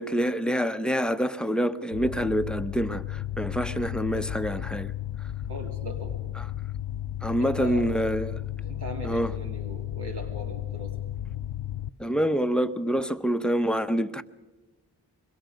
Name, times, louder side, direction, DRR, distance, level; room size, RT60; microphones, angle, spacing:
voice 1, 0.0-4.9 7.2-8.4 9.0-9.3 12.0-14.2, equal, ahead, 0.8 m, -26 dB
sound 1, 1.9-11.9, left 12 dB, 80° left, 0.7 m, -34 dB
voice 2, 5.5-6.2 7.4-7.9 8.6-11.0, right 1 dB, 60° right, 3.0 m, -39 dB
25.5 x 22.0 x 5.2 m
wide cardioid pair, 60°, 44 cm